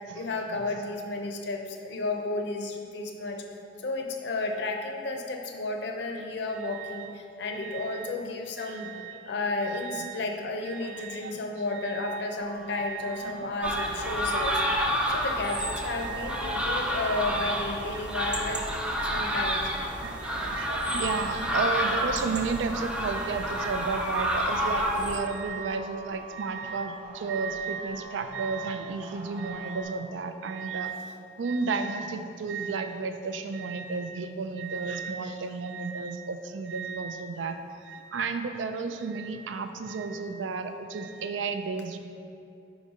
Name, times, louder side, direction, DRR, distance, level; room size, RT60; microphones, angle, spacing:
voice 1, 0.1-3.4 3.8-8.9 9.3-14.6 15.1-18.7 19.1-19.7, left 2 dB, 65° left, 3 dB, 0.6 m, -32 dB
voice 2, 6.6-7.0 7.5-8.1 8.6-9.2 9.6-10.2 10.7-11.4 11.7-12.2 12.8-13.5 13.8-14.4 15.1-15.3 16.0-16.4 16.9-17.4 19.0-19.4 20.0-31.0 31.4-37.6 37.8-42.0, right 4 dB, 80° right, 8 dB, 0.4 m, -33 dB
sound 1, 12.3-29.8, right 3 dB, 35° right, 1.0 m, -47 dB
sound 2, 13.6-25.2, equal, 5° right, 0.4 m, -29 dB
5.2 x 4.0 x 4.9 m, 2.6 s
head